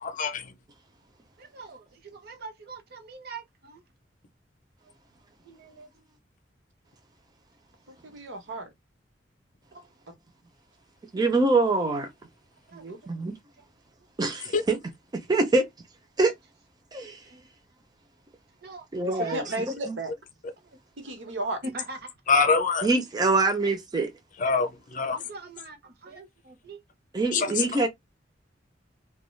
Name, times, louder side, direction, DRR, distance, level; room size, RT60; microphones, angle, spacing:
voice 1, 0.0-0.5 14.5-14.6 22.3-22.9 24.4-25.2 27.3-27.9, left 4 dB, 45° left, 0.5 m, -24 dB
voice 2, 1.4-3.8 5.4-5.9 9.7-9.9 12.7-13.1 13.6-13.7 17.3-17.5 18.6-18.9 19.1-19.6 21.6-22.1 25.1-26.8, right 3 dB, 60° right, 0.8 m, -43 dB
voice 3, 7.9-8.7 12.7-13.0 19.0-20.1 21.0-21.6, right 2 dB, 85° right, 1.0 m, -34 dB
voice 4, 11.1-12.1 13.1-13.3 14.2-14.8 15.3-15.7 16.2-16.3 16.9-17.2 18.9-19.4 22.8-24.1 27.1-27.9, right 3 dB, 20° right, 0.4 m, -24 dB
2.3 x 2.2 x 3.1 m
head